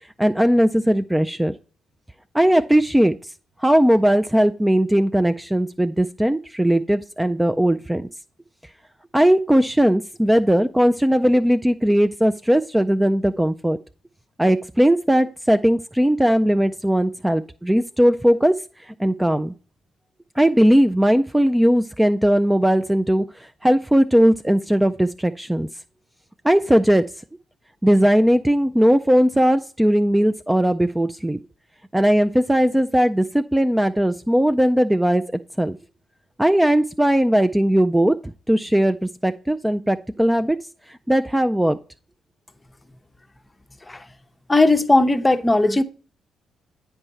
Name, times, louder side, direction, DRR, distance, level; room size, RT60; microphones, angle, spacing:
voice 1, 0.2-1.5 2.3-3.2 3.6-8.1 9.1-13.8 14.4-18.5 18.8-19.5 20.4-25.7 26.4-27.0 27.8-31.4 31.9-35.2 35.6-35.8 36.4-40.6 40.9-41.8, equal, 10° right, 0.4 m, -18 dB
voice 2, 44.5-45.8, left 2 dB, 20° left, 0.7 m, -17 dB
8.7 x 4.7 x 4.1 m
hypercardioid pair, 45°, 0 cm